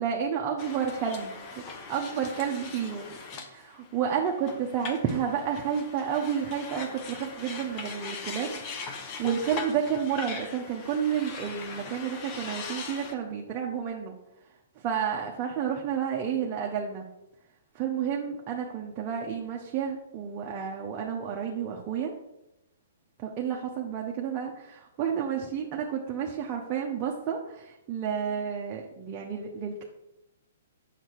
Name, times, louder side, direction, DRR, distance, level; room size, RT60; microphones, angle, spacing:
voice 1, 0.0-1.4 1.9-8.6 8.9-14.1 14.8-17.1 17.7-22.1 23.2-29.8, right 7 dB, 25° right, -1 dB, 1.0 m, -31 dB
sound 1, 0.6-13.1, left 4 dB, 30° left, 1.0 m, -41 dB
8.5 x 6.8 x 4.7 m, 0.93 s
hypercardioid pair, 150°, 0 cm